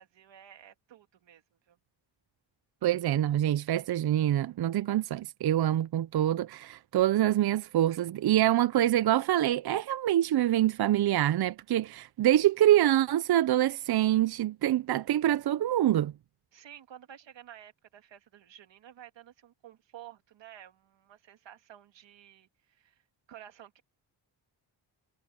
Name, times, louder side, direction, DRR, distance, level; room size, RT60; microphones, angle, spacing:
voice 1, 0.0-1.8 16.5-23.0 23.3-23.8, right 11 dB, 90° right, 2.2 m, -52 dB
voice 2, 2.8-16.1, right 12 dB, 60° right, 0.6 m, -25 dB
cardioid pair, 100°, 43 cm